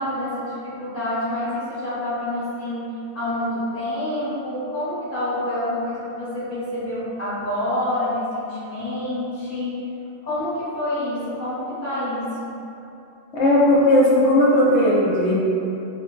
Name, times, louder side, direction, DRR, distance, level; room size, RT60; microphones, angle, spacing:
voice 1, 0.0-9.7 10.2-12.5, left 1 dB, 45° left, -13 dB, 1.6 m, -27 dB
voice 2, 13.3-15.3, left 1 dB, 65° left, -5 dB, 0.9 m, -16 dB
4.7 x 2.2 x 2.4 m, 2.8 s
omnidirectional pair, 1.3 m